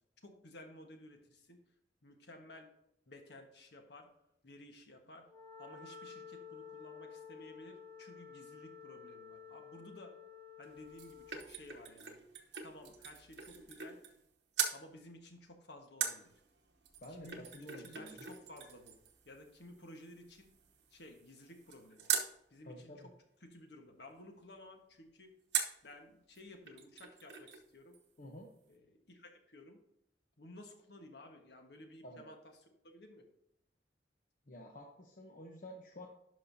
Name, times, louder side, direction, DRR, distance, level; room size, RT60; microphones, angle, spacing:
voice 1, 0.2-1.6 2.0-2.7 3.1-4.1 4.4-5.3 5.6-10.1 10.6-12.2 12.6-14.0 14.7-16.3 17.1-17.4 17.8-18.9 19.2-20.5 20.9-22.1 22.5-23.1 23.4-25.3 25.8-28.0 28.7-29.8 30.4-32.4 32.8-33.3, left 1 dB, 65° left, 4 dB, 1.3 m, -55 dB
Wind instrument woodwind instrument, 5.2-11.5, left 6 dB, 15° left, 1.0 m, -52 dB
sound 1, 10.6-14.3 14.5-14.8 16.0-22.3 25.5-25.9 26.4-26.5 26.7-27.7 27.9-28.0, right 8 dB, 70° right, 1.0 m, -41 dB
voice 2, 17.0-18.3 22.6-23.1 28.2-28.5 32.0-32.2 34.5-36.1, equal, 50° left, 1 dB, 0.9 m, -50 dB
11.5 x 5.5 x 2.7 m, 0.79 s
head